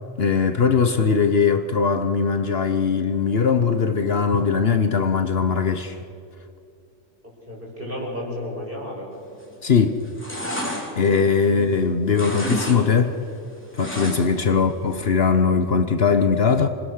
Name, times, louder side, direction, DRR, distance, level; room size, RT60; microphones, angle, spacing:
voice 1, 0.2-6.0 9.6-10.0 10.9-13.2 13.8-16.7, left 5 dB, 55° left, 1.2 m, -20 dB
voice 2, 7.5-9.1 14.5-14.7, left 1 dB, 45° right, 6.6 m, -33 dB
sound 1, 9.3-9.7 10.0-11.8 12.1-12.8 13.1-14.5 14.8-14.9, equal, 10° left, 3.5 m, -30 dB
27.0 x 20.0 x 6.5 m
omnidirectional pair, 1.3 m